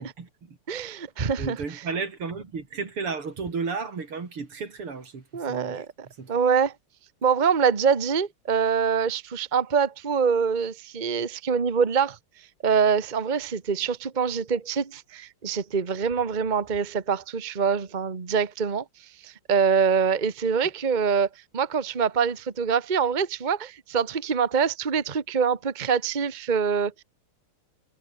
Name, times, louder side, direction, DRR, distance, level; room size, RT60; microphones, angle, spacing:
voice 1, 0.0-0.6 1.4-6.3, right 5 dB, 80° right, 4.5 m, -34 dB
voice 2, 0.7-1.6 5.3-5.9 6.3-6.7 7.2-12.2 12.6-18.8 19.2-21.3 21.5-27.0, right 6 dB, 25° right, 1.3 m, -24 dB
omnidirectional pair, 2.4 m